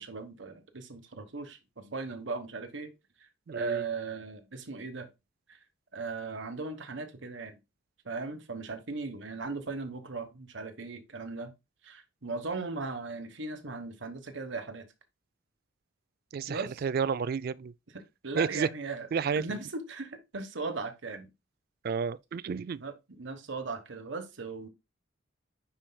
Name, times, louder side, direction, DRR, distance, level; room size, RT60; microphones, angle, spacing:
voice 1, 0.0-2.9 3.2-5.1 5.5-5.6 5.9-7.6 8.0-11.5 11.8-14.9 16.5-16.8 17.9-19.1 19.4-21.3 22.8-24.7, right 4 dB, 70° right, 1.1 m, -38 dB
voice 2, 3.5-3.8 16.3-17.7 18.4-18.7 19.1-19.4 21.8-22.8, right 6 dB, 50° right, 0.3 m, -31 dB
9.8 x 4.4 x 2.2 m
head